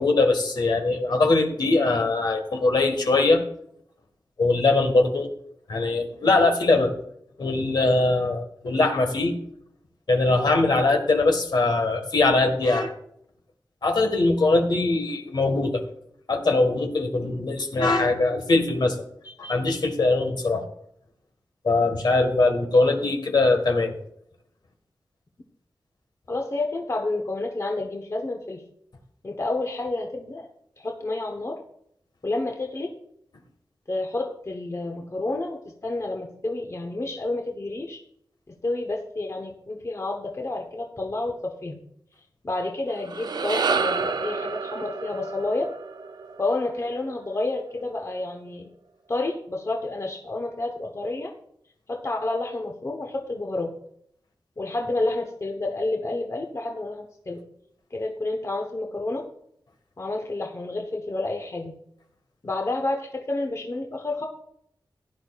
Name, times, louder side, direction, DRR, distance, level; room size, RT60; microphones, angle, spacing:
voice 1, 0.0-3.4 4.4-5.3 5.7-6.9 7.4-9.3 10.1-12.9 13.8-15.8 16.3-18.9 19.4-20.6 21.6-23.9, left 2 dB, 65° left, 4 dB, 1.6 m, -21 dB
voice 2, 26.3-28.6 29.2-30.5 30.8-31.6 32.2-32.9 33.9-38.0 38.5-41.8 42.4-45.7 46.4-48.7 49.1-51.3 51.9-53.7 54.6-57.4 57.9-59.3 60.0-61.8 62.4-64.3, left 2 dB, 40° left, 2 dB, 1.1 m, -29 dB
sound 1, 42.9-47.4, right 5 dB, 60° right, 0.5 m, -29 dB
16.0 x 10.0 x 2.4 m, 0.71 s
wide cardioid pair, 95°, 8 cm